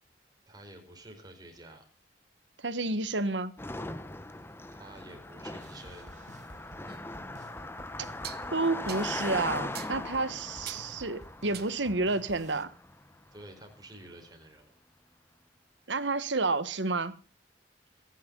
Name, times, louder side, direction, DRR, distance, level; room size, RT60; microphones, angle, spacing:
voice 1, 0.5-1.8 4.7-6.1 10.5-10.8 13.3-14.7, right 1 dB, 20° right, 4.5 m, -50 dB
voice 2, 2.6-3.5 8.5-12.7 15.9-17.1, right 3 dB, 90° right, 1.5 m, -30 dB
Car passing by, 3.6-13.1, left 2 dB, 15° left, 1.0 m, -40 dB
sound 1, 5.6-12.6, right 1 dB, 40° right, 1.7 m, -52 dB
sound 2, 6.9-7.0 8.2-8.5 8.9-9.1 9.7-10.0 10.7-10.9 11.5-11.8, right 12 dB, 60° right, 1.2 m, -43 dB
24.0 x 10.0 x 3.9 m
head